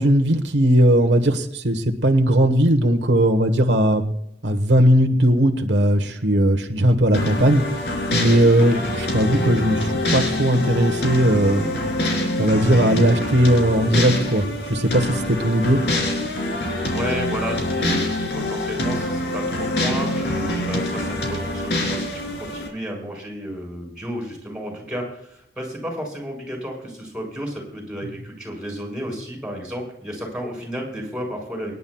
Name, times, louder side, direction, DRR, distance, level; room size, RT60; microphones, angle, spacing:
voice 1, 0.0-4.1 4.4-7.6 8.1-11.9 12.4-15.8, right 1 dB, 85° right, 5 dB, 1.4 m, -18 dB
sound 1, 7.1-22.7, left 1 dB, 65° left, 3.4 m, -25 dB
voice 2, 16.9-31.7, equal, 5° right, -1 dB, 5.6 m, -32 dB
25.5 x 11.0 x 2.4 m, 0.74 s
head